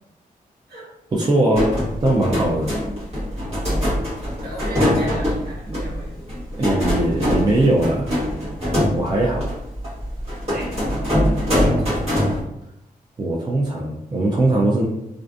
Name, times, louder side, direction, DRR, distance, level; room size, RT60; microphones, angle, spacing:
voice 1, 1.1-1.7 2.0-2.7 6.6-8.1 8.9-9.5 13.2-14.9, right 2 dB, 25° right, -3 dB, 0.4 m, -20 dB
sound 1, 1.5-12.4, equal, 45° right, 1.2 m, -23 dB
voice 2, 4.4-6.3 10.5-11.9, equal, 85° right, -5 dB, 1.0 m, -36 dB
2.4 x 2.3 x 2.4 m, 0.84 s
wide cardioid pair, 115°, 15 cm